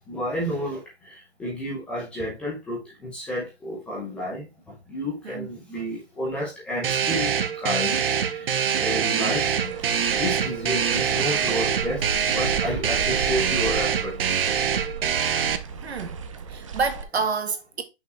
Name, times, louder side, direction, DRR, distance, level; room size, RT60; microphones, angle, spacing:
voice 1, 0.1-14.1, equal, 5° left, 0.7 m, -31 dB
sound 1, 6.8-15.6, right 7 dB, 60° right, 0.8 m, -24 dB
sound 2, 9.3-17.0, right 5 dB, 30° right, 0.7 m, -36 dB
voice 2, 15.8-16.2 16.5-17.8, right 5 dB, 75° right, 1.6 m, -28 dB
5.8 x 4.4 x 4.4 m
hypercardioid pair, 165°, 32 cm